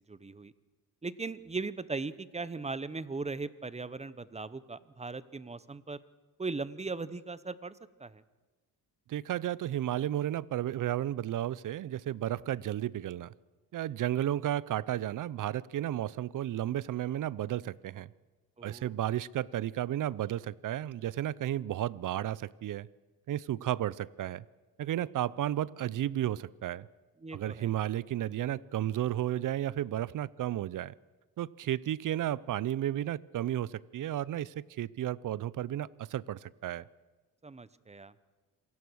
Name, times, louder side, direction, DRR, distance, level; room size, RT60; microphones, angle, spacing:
voice 1, 0.1-0.5 1.0-6.0 6.4-8.2 18.6-18.9 27.2-27.7 37.4-38.1, right 3 dB, 15° right, 16 dB, 0.8 m, -38 dB
voice 2, 9.1-13.3 13.7-18.1 18.6-22.9 23.3-24.4 24.8-26.9 27.3-30.9 31.4-36.9, right 12 dB, 55° right, 21 dB, 0.7 m, -33 dB
27.0 x 17.0 x 6.4 m, 1.2 s
cardioid pair, 100°, 38 cm